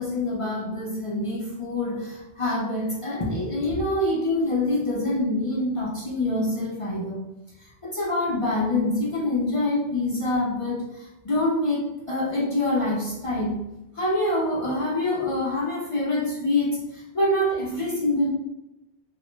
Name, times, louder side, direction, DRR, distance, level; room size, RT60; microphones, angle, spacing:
voice 1, 0.0-7.2 7.8-13.6 14.0-18.3, left 1 dB, 50° left, -5 dB, 0.4 m, -25 dB
2.3 x 2.0 x 3.1 m, 0.92 s
omnidirectional pair, 1.1 m